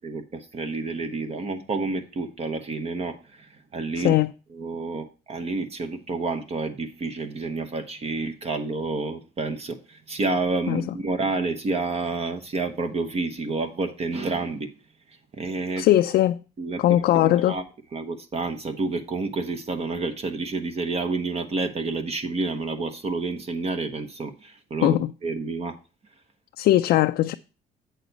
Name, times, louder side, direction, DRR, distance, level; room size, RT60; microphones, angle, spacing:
voice 1, 0.0-4.2 4.5-14.7 15.4-15.9 16.6-17.6 17.9-25.0 25.2-25.7, right 3 dB, 35° right, 0.9 m, -29 dB
voice 2, 4.0-4.3 10.7-10.9 15.8-16.4 16.8-17.6 24.8-25.1 26.6-27.3, left 14 dB, 65° left, 0.4 m, -20 dB
8.1 x 6.3 x 4.0 m
cardioid pair, 110°, 17 cm